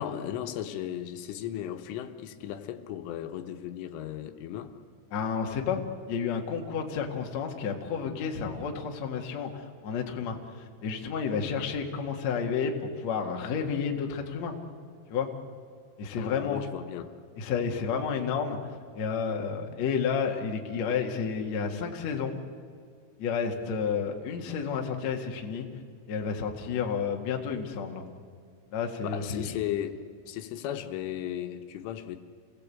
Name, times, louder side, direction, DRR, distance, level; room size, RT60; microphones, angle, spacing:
voice 1, 0.0-4.7 16.2-17.1 29.0-30.0 30.3-32.2, left 11 dB, 80° left, 6 dB, 3.5 m, -36 dB
voice 2, 5.1-5.8 6.1-14.6 15.1-15.3 16.0-16.6 17.4-22.4 23.2-25.7 26.1-28.1 28.7-29.5, left 6 dB, 55° left, 2 dB, 2.1 m, -31 dB
28.5 x 18.5 x 8.4 m, 2.1 s
omnidirectional pair, 5.8 m